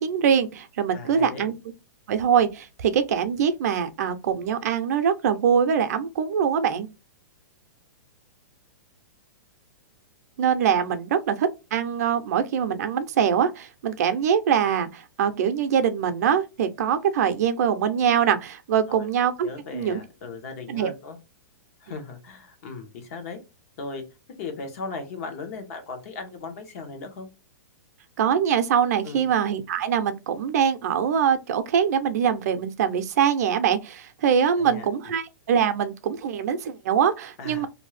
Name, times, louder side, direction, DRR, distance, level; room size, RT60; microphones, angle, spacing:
voice 1, 0.0-1.5 2.1-6.9 10.4-20.0 20.7-20.9 28.2-37.7, right 8 dB, 60° right, 0.6 m, -23 dB
voice 2, 0.9-1.5 18.9-19.1 19.4-21.2 21.8-23.4 23.8-24.0 24.4-27.3 29.0-29.3 34.6-35.2 37.4-37.7, left 4 dB, 50° left, 1.0 m, -37 dB
2.7 x 2.4 x 3.2 m
hypercardioid pair, 160°, 10 cm